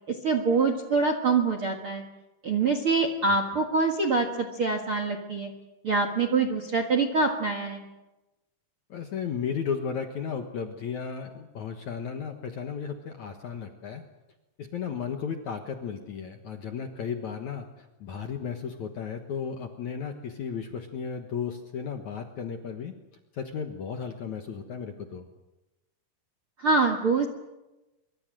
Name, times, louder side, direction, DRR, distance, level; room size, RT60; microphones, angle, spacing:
voice 1, 0.2-2.0 2.4-5.5 5.8-7.8 26.6-27.3, right 4 dB, 50° right, 7 dB, 1.6 m, -25 dB
voice 2, 8.9-14.0 14.6-22.9 23.3-25.3, left 6 dB, 60° left, 5 dB, 2.0 m, -34 dB
25.0 x 24.5 x 7.7 m, 1.0 s
omnidirectional pair, 5.1 m